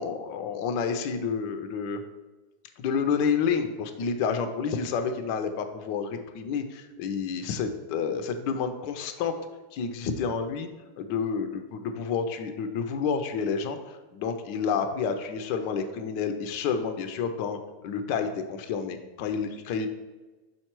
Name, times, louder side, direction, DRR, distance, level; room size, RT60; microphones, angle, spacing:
voice 1, 0.0-2.0 2.8-9.3 9.7-10.7 11.0-19.9, left 6 dB, 75° left, 7 dB, 1.0 m, -29 dB
6.4 x 4.4 x 4.4 m, 1.2 s
omnidirectional pair, 2.4 m